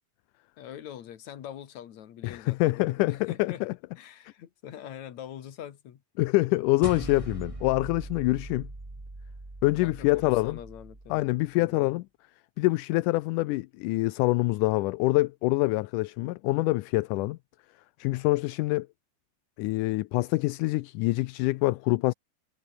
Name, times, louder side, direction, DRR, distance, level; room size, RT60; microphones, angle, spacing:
voice 1, 0.6-3.6 4.0-6.0 9.8-11.2 11.5-11.9, left 10 dB, 65° left, 3.0 m, -43 dB
voice 2, 2.2-3.7 6.2-8.7 9.6-10.6 11.1-12.1 12.6-17.4 18.0-18.9 19.6-22.1, left 20 dB, 85° left, 2.1 m, -25 dB
sound 1, 6.8-11.5, right 2 dB, 10° right, 1.7 m, -41 dB
omnidirectional pair, 3.6 m